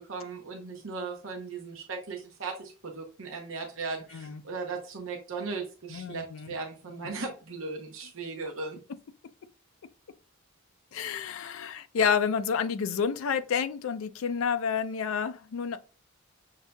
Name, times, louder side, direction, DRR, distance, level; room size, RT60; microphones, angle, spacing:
voice 1, 0.0-8.8, right 4 dB, 65° right, 0.8 m, -37 dB
voice 2, 5.9-6.5 10.9-15.8, left 6 dB, 70° left, 0.4 m, -29 dB
6.4 x 2.7 x 2.2 m
head